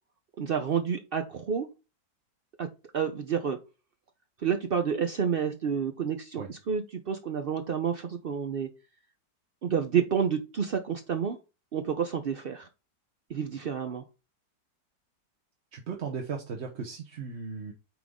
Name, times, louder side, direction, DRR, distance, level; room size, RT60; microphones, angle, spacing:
voice 1, 0.4-1.7 2.6-2.7 2.9-3.6 4.4-8.7 9.6-11.4 11.7-12.7 13.3-14.0, right 7 dB, 80° right, 6 dB, 0.5 m, -29 dB
voice 2, 15.7-17.7, right 5 dB, 50° right, 1 dB, 1.0 m, -36 dB
9.2 x 3.9 x 3.6 m, 0.30 s
omnidirectional pair, 1.9 m